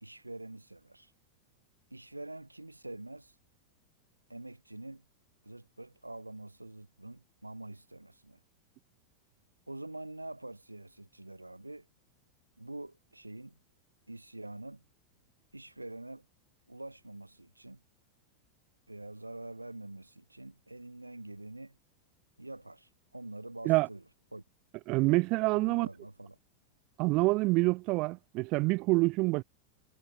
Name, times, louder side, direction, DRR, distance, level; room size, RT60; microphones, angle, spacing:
voice 1, 0.0-1.1 1.9-3.4 4.3-5.1 5.4-8.4 9.7-11.9 12.6-13.6 14.1-14.8 15.5-16.3 16.7-17.8 18.9-21.8 22.4-24.0 24.3-24.4 25.5-26.4, right 2 dB, 85° right, 0.7 m, -45 dB
voice 2, 24.9-25.9 27.0-29.4, right 24 dB, 40° right, 0.3 m, -26 dB
figure-of-eight pair, 90°, 0 cm